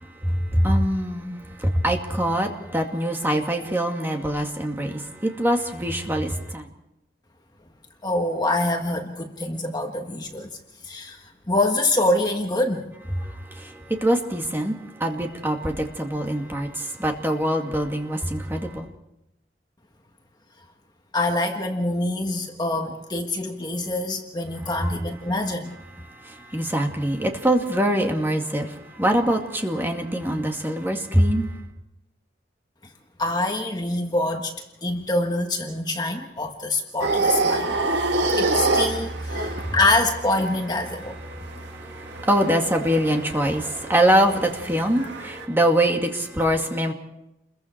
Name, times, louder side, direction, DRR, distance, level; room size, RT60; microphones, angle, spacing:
voice 1, 0.0-6.7 13.2-18.9 24.6-24.9 26.0-31.6 39.4-39.7 41.3-46.9, right 1 dB, 10° right, 2 dB, 2.2 m, -24 dB
voice 2, 8.0-10.5 10.8-12.9 21.1-25.8 33.2-34.5 34.8-37.8 38.3-41.2, left 2 dB, 25° left, 3 dB, 1.5 m, -25 dB
sound 1, 37.0-45.4, right 2 dB, 80° right, 1.9 m, -27 dB
29.5 x 22.0 x 4.6 m, 0.88 s
head